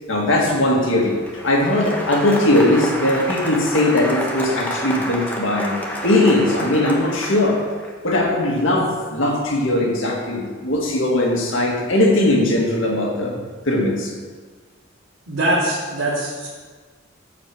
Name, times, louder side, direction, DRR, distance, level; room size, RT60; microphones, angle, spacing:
voice 1, 0.1-1.2 1.4-7.7 8.0-13.4 13.7-14.1, left 1 dB, 80° left, -1 dB, 1.8 m, -19 dB
Applause, 1.0-7.9, equal, 10° left, 1.0 m, -29 dB
voice 2, 15.3-16.5, right 1 dB, 85° right, -10 dB, 2.1 m, -22 dB
14.0 x 5.0 x 4.6 m, 1.5 s
head